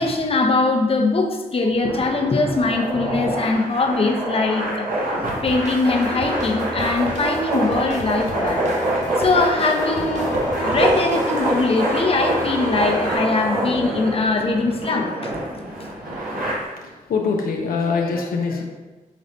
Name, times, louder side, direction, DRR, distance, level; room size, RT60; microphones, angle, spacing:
voice 1, 0.0-4.9 5.4-8.7 9.2-15.3, left 3 dB, 40° left, 2 dB, 0.6 m, -21 dB
sound 1, 1.8-16.5, right 1 dB, 80° right, 1.1 m, -25 dB
sound 2, 5.3-11.8, right 2 dB, 55° right, 0.6 m, -39 dB
sound 3, 5.8-13.2, left 1 dB, 60° left, 1.2 m, -33 dB
voice 2, 16.5-18.6, left 4 dB, 90° left, 1 dB, 0.5 m, -24 dB
5.1 x 3.2 x 2.6 m, 1.2 s
cardioid pair, 60°, 15 cm